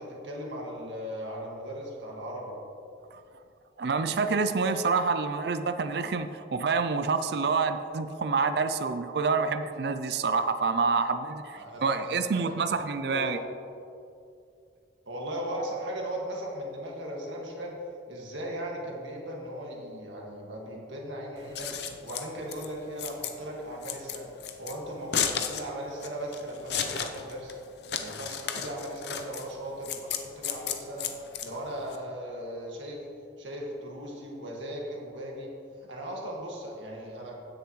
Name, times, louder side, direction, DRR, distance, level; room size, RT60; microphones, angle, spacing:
voice 1, 0.0-2.5 11.5-12.6 13.1-13.4 15.1-17.8 18.1-21.7 22.0-24.3 24.6-27.6 28.0-31.1 31.4-33.0 33.4-35.5 35.9-37.4, right 1 dB, 90° right, -1 dB, 1.9 m, -37 dB
voice 2, 3.8-13.4, right 4 dB, 60° right, 10 dB, 0.4 m, -27 dB
Scissors, 21.4-32.0, left 8 dB, 65° left, 0.6 m, -34 dB
16.0 x 6.8 x 3.1 m, 2.5 s
head